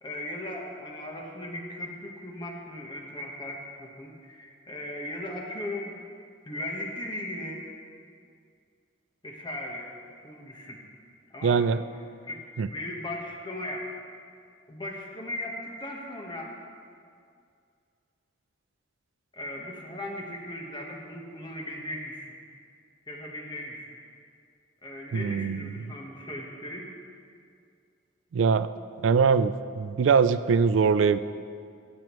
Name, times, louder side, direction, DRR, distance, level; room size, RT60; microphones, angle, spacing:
voice 1, 0.0-6.0 6.4-7.6 9.2-9.9 10.2-10.8 11.3-11.7 12.2-12.4 12.7-13.9 14.7-16.5 19.3-22.3 23.1-23.9 24.8-26.9, left 1 dB, 25° left, -1 dB, 1.2 m, -37 dB
voice 2, 11.4-11.8 12.6-12.7 25.1-25.8 28.3-28.7 29.0-31.2, right 5 dB, 80° right, 14 dB, 0.4 m, -22 dB
15.0 x 8.5 x 3.1 m, 2.3 s
head